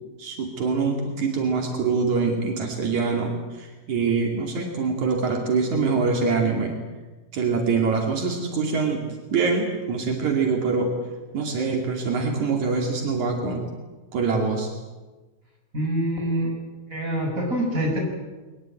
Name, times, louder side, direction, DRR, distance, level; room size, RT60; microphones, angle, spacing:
voice 1, 0.2-6.7 7.3-10.9 11.3-13.6 14.1-14.7, right 4 dB, 75° right, 2 dB, 4.0 m, -24 dB
voice 2, 15.7-16.5 16.9-18.0, right 1 dB, 25° right, 1 dB, 6.9 m, -25 dB
22.5 x 20.5 x 9.1 m, 1.2 s
omnidirectional pair, 3.4 m